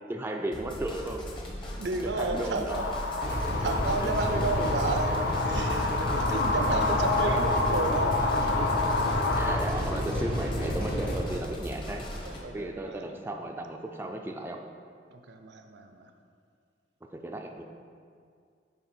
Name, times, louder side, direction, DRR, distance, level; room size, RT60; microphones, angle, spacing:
voice 1, 0.1-1.2 2.0-2.9 6.6-6.8 7.2-7.4 9.4-12.1 12.5-14.6 17.1-17.6, right 1 dB, 15° right, 2 dB, 0.3 m, -35 dB
sound 1, 0.5-12.4, equal, 30° left, 0.9 m, -39 dB
voice 2, 1.8-3.0 3.6-5.2 5.5-8.2 12.2-13.1 15.1-16.1, right 3 dB, 70° right, 6 dB, 0.5 m, -32 dB
sound 2, 2.7-9.6, left 3 dB, 80° left, 0.5 m, -29 dB
sound 3, 3.2-11.2, equal, 60° left, 1.2 m, -31 dB
8.9 x 3.3 x 4.4 m, 2.2 s
head